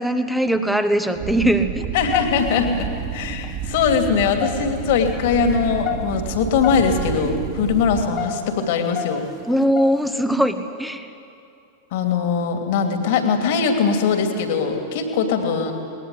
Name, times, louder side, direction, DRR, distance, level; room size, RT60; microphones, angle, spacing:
voice 1, 0.0-1.8 9.5-11.1, right 1 dB, ahead, 8 dB, 1.3 m, -20 dB
sound 1, 1.1-8.0, right 7 dB, 45° right, 3.1 m, -30 dB
voice 2, 1.9-9.3 11.9-15.7, left 6 dB, 50° left, 5 dB, 2.8 m, -21 dB
sound 2, 2.1-2.8 3.3-3.5 4.1-5.0 5.6-6.8 7.1-7.3 7.8-10.2, left 10 dB, 35° left, 1.5 m, -29 dB
20.0 x 20.0 x 9.7 m, 2.5 s
figure-of-eight pair, 90°, 0 cm